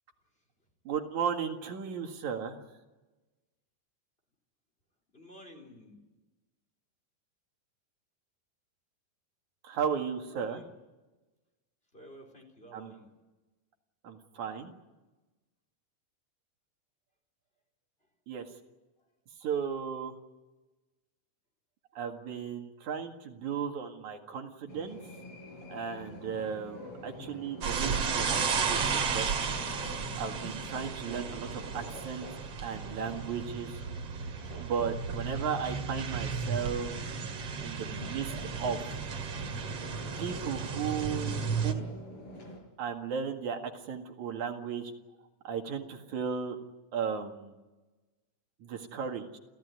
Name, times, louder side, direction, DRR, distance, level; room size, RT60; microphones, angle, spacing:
voice 1, 0.8-2.6 9.6-10.6 12.7-12.9 14.0-14.7 18.3-18.5 19.4-20.1 21.9-25.0 25.7-29.8 30.2-32.3 32.6-33.8 34.5-37.0 37.6-38.8 40.2-41.9 42.8-44.9 45.4-46.6 46.9-47.6 48.6-49.3, right 7 dB, 75° right, 4 dB, 3.3 m, -35 dB
voice 2, 5.1-6.0 10.3-10.7 11.9-13.1, equal, 20° left, 3 dB, 4.2 m, -51 dB
sound 1, 24.7-42.6, left 1 dB, 50° left, 5.8 m, -47 dB
sound 2, 27.6-41.7, right 5 dB, 55° right, 3.0 m, -34 dB
29.0 x 15.5 x 9.5 m, 1.1 s
omnidirectional pair, 3.4 m